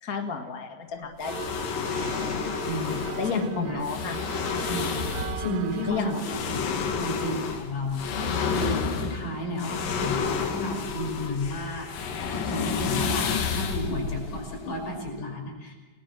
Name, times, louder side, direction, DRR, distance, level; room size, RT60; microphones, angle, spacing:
voice 1, 0.0-1.9 3.2-4.2 5.9-6.4 9.5-9.8, left 5 dB, 30° left, 3 dB, 1.9 m, -32 dB
sound 1, 1.2-15.1, left 6 dB, 90° left, 3.6 m, -30 dB
sound 2, 1.2-6.2, right 9 dB, 90° right, 2.6 m, -39 dB
voice 2, 2.6-3.9 4.7-8.2 8.4-11.9 12.3-15.7, left 1 dB, 70° left, 1 dB, 7.3 m, -33 dB
29.0 x 20.5 x 6.2 m, 1.3 s
omnidirectional pair, 3.8 m